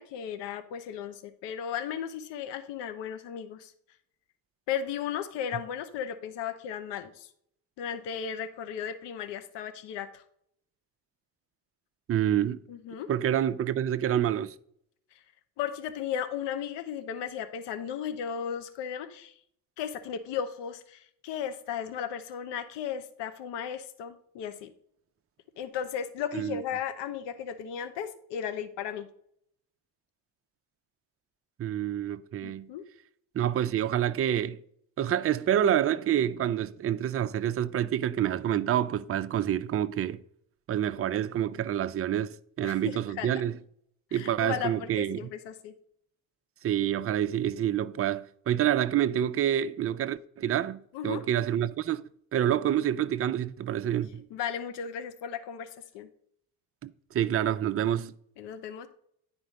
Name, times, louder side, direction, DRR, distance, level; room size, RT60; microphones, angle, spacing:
voice 1, 0.0-3.7 4.7-7.3 7.8-10.2 12.7-13.1 15.6-19.3 19.8-24.7 25.6-29.1 32.4-32.8 42.6-43.3 44.1-45.7 50.9-51.2 54.3-55.7 55.9-56.1 58.4-58.9, left 8 dB, 70° left, 1.0 m, -35 dB
voice 2, 12.1-12.6 13.1-14.5 26.3-26.6 31.6-32.7 33.3-34.6 35.0-40.2 40.7-43.6 44.1-45.3 46.6-52.0 52.3-54.2 56.8-56.9 57.1-58.1, right 10 dB, 35° right, 0.5 m, -27 dB
9.8 x 4.4 x 5.2 m
supercardioid pair, 80°, 43 cm